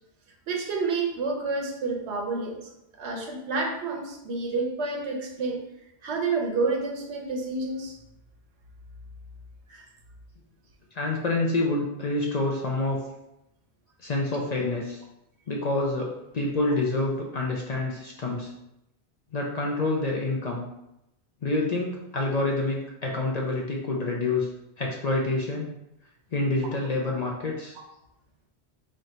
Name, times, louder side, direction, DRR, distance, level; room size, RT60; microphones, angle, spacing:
voice 1, 0.5-2.7 3.0-5.6 6.0-7.9 9.7-9.9, right 3 dB, 85° right, 1 dB, 1.0 m, -29 dB
voice 2, 10.9-13.0 14.0-15.0 15.5-18.5 19.3-20.7 21.4-24.5 24.8-25.7 26.3-27.8, left 2 dB, 50° left, -1 dB, 0.5 m, -27 dB
3.2 x 2.5 x 4.1 m, 0.85 s
omnidirectional pair, 1.1 m